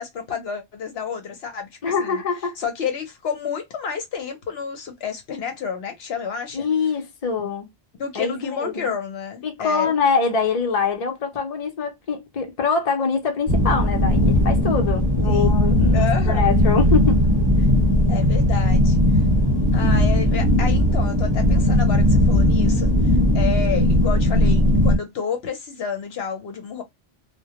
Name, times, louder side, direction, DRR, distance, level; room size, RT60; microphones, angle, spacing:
voice 1, 0.0-1.7 2.0-2.2 2.6-6.7 7.4-7.5 8.0-9.9 15.3-15.6 15.9-16.5 18.1-19.0 19.7-26.8, left 6 dB, 70° left, 0.9 m, -30 dB
voice 2, 1.8-2.5 6.5-7.7 8.1-8.9 9.4-17.2, left 5 dB, 40° left, 0.6 m, -24 dB
sound 1, 13.5-25.0, left 1 dB, 25° right, 1.0 m, -18 dB
2.2 x 2.1 x 2.8 m
omnidirectional pair, 1.1 m